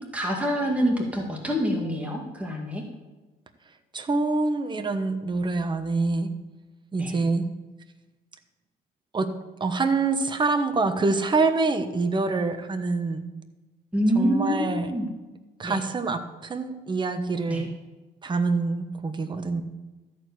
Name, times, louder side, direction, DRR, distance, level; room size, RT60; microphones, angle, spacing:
voice 1, 0.1-2.8 7.0-7.1 13.9-15.1 15.6-15.8 17.5-17.6, equal, 5° right, 0 dB, 2.0 m, -26 dB
voice 2, 3.9-6.3 6.9-7.5 9.1-9.3 9.6-13.3 14.1-14.9 15.6-17.7 18.2-19.6, right 3 dB, 25° right, 8 dB, 1.1 m, -25 dB
13.5 x 4.7 x 8.1 m, 1.2 s
supercardioid pair, 85°, 19 cm